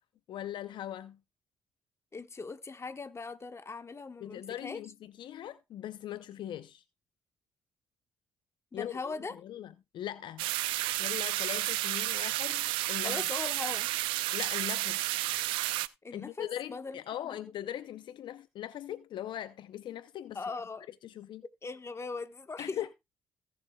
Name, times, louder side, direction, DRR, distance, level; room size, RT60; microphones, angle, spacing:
voice 1, 0.3-1.2 4.2-6.8 8.7-10.5 11.0-13.2 14.3-15.0 16.1-20.4 21.0-21.4 22.6-22.9, left 11 dB, 65° left, 0.6 m, -40 dB
voice 2, 2.1-4.8 8.7-9.4 13.0-13.9 16.0-17.4 20.3-20.9 21.6-22.9, left 4 dB, 30° left, 1.2 m, -40 dB
sound 1, 10.4-15.9, right 17 dB, 85° right, 0.5 m, -31 dB
17.0 x 7.0 x 2.2 m
supercardioid pair, 55°, 9 cm